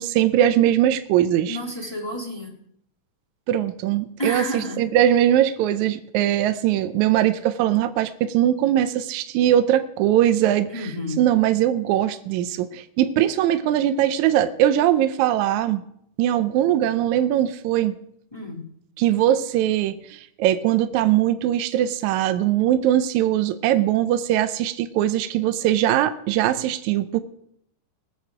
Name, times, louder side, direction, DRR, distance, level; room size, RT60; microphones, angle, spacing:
voice 1, 0.0-1.6 3.5-10.9 11.2-15.8 16.2-17.9 19.0-27.2, right 11 dB, 75° right, 10 dB, 1.9 m, -21 dB
voice 2, 1.4-2.6 4.2-4.8 10.7-11.3 18.3-18.6, equal, 10° left, -1 dB, 1.6 m, -30 dB
20.5 x 7.4 x 4.9 m, 0.71 s
omnidirectional pair, 3.8 m